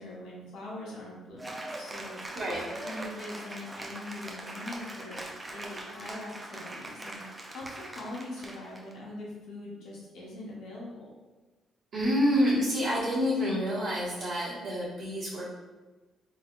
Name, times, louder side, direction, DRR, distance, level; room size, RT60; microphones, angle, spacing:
voice 1, 0.0-2.4 2.8-11.1, left 1 dB, 80° left, -5 dB, 1.1 m, -42 dB
Cheering / Applause, 1.4-8.9, right 1 dB, 20° right, 0.5 m, -41 dB
voice 2, 11.9-15.5, equal, 70° right, -10 dB, 1.1 m, -28 dB
3.3 x 3.2 x 2.5 m, 1.2 s
cardioid pair, 90°, 0 cm